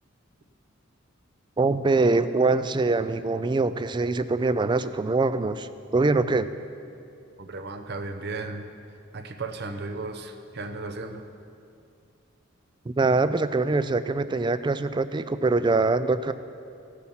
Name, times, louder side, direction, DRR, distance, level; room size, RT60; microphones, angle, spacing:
voice 1, 1.6-6.5 12.9-16.3, right 3 dB, 25° right, 13 dB, 0.4 m, -23 dB
voice 2, 7.4-8.7 9.1-11.3, right 3 dB, 55° right, 7 dB, 0.8 m, -35 dB
15.5 x 8.3 x 5.7 m, 2.5 s
head